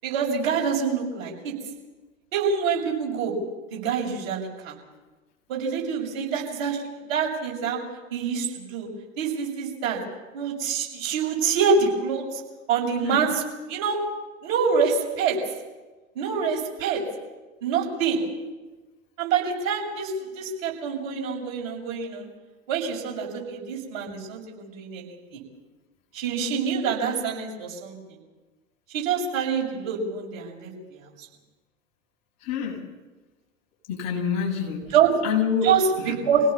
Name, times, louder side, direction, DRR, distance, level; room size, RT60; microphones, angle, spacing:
voice 1, 0.0-1.5 2.3-3.3 3.7-4.8 5.5-7.8 8.1-8.9 9.2-10.0 10.3-12.4 12.7-13.4 13.7-14.0 14.4-15.4 16.2-17.0 17.6-18.2 19.2-22.3 22.7-25.4 26.1-28.0 28.9-30.7 34.9-35.1 35.6-36.4, right 6 dB, 50° right, -1 dB, 7.1 m, -26 dB
voice 2, 32.4-32.8 33.9-34.9 35.2-36.2, left 6 dB, 40° left, -1 dB, 6.9 m, -27 dB
25.5 x 17.5 x 7.3 m, 1.2 s
figure-of-eight pair, 95°, 40 cm